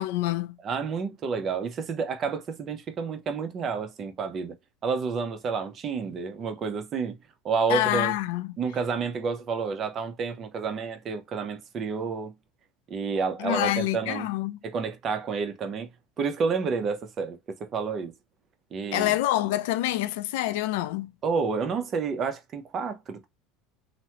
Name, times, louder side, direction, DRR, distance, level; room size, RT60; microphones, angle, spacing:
voice 1, 0.0-0.6 7.7-8.6 13.4-14.6 18.9-21.1, left 15 dB, 80° left, 0.4 m, -27 dB
voice 2, 0.6-4.5 4.8-7.1 7.4-8.1 8.6-12.3 12.9-14.3 14.6-15.9 16.2-18.1 18.7-19.1 21.2-23.2, right 5 dB, 35° right, 0.7 m, -30 dB
3.1 x 2.1 x 2.9 m
supercardioid pair, 120°, 0 cm